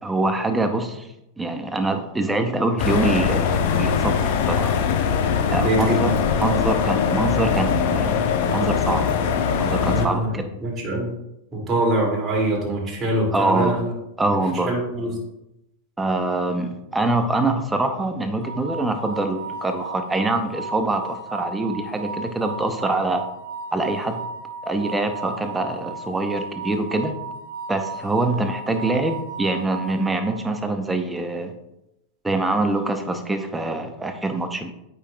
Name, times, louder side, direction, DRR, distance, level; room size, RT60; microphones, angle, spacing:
voice 1, 0.0-1.1 1.4-4.8 5.5-6.1 6.4-9.1 9.6-10.4 13.3-13.8 14.2-14.7 16.0-23.2 23.7-24.2 24.6-27.1 27.7-31.5 32.2-34.7, right 2 dB, 10° right, 6 dB, 0.7 m, -24 dB
sound 1, 2.8-10.1, left 7 dB, 60° left, 0.8 m, -21 dB
voice 2, 5.5-6.1 9.8-10.3 10.6-11.1 11.5-13.9 14.7-15.1, right 1 dB, 25° right, -3 dB, 2.5 m, -23 dB
sound 2, 18.4-30.6, right 4 dB, 80° left, 1.3 m, -35 dB
8.4 x 5.4 x 2.3 m, 0.87 s
hypercardioid pair, 110°, 0 cm